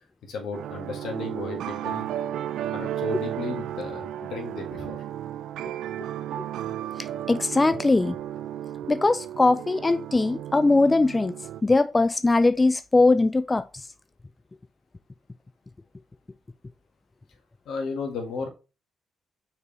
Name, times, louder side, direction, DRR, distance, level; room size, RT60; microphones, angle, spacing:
voice 1, 0.3-2.1 2.7-5.0 17.6-18.5, left 4 dB, 70° left, 1.7 m, -34 dB
sound 1, 0.5-11.6, right 11 dB, 75° right, 0.4 m, -34 dB
voice 2, 7.3-8.1 8.9-11.3 11.6-13.9, left 3 dB, 25° left, 0.3 m, -21 dB
6.8 x 4.5 x 3.2 m
hypercardioid pair, 50°, 0 cm